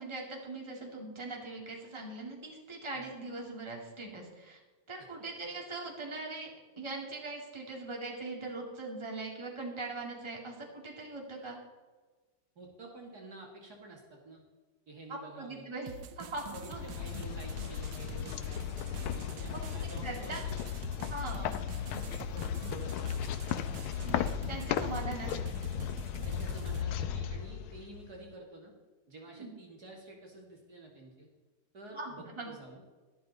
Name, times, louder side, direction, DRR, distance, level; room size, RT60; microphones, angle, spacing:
voice 1, 0.0-4.6 4.9-6.5 6.8-11.6 15.1-16.8 19.5-19.6 20.0-20.4 21.1-21.5 24.0-25.6 29.3-29.5 31.9-32.5, right 2 dB, 15° right, -1 dB, 2.3 m, -41 dB
voice 2, 12.6-14.4 14.9-15.7 16.5-20.3 22.3-23.2 23.7-24.2 24.9-25.1 26.2-28.7 29.1-31.3 31.7-32.8, right 2 dB, 50° right, -1 dB, 2.3 m, -50 dB
sound 1, 15.9-26.8, right 8 dB, 70° right, 1.4 m, -48 dB
sound 2, 16.2-28.2, left 9 dB, 90° left, 1.6 m, -36 dB
12.5 x 12.0 x 4.0 m, 1.3 s
omnidirectional pair, 2.3 m